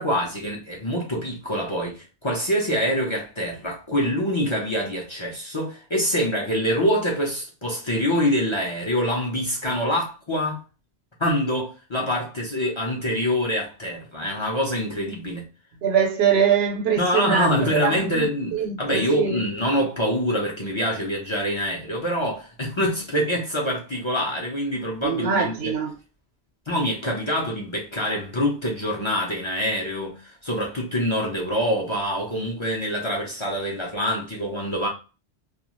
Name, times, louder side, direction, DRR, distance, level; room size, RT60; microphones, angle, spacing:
voice 1, 0.0-10.6 11.2-15.4 17.0-25.7 26.7-34.9, equal, 35° left, 0.6 m, -25 dB
voice 2, 15.8-18.3 18.5-19.4 25.0-25.9, right 7 dB, 80° right, 0.9 m, -23 dB
2.4 x 2.3 x 2.9 m
omnidirectional pair, 1.1 m